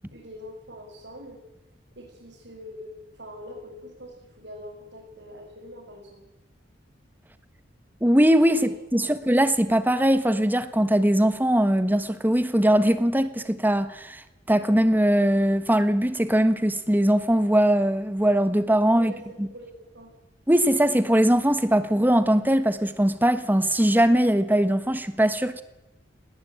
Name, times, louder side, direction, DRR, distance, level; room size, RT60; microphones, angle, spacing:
voice 1, 0.1-1.4 1.9-6.2 8.5-8.6 8.9-9.2 18.9-20.1, equal, 70° right, 6.3 m, -43 dB
voice 2, 8.0-8.6 8.9-14.2 14.5-19.1 19.4-19.5 20.5-25.6, right 1 dB, 10° right, 1.3 m, -21 dB
19.5 x 18.5 x 9.0 m
head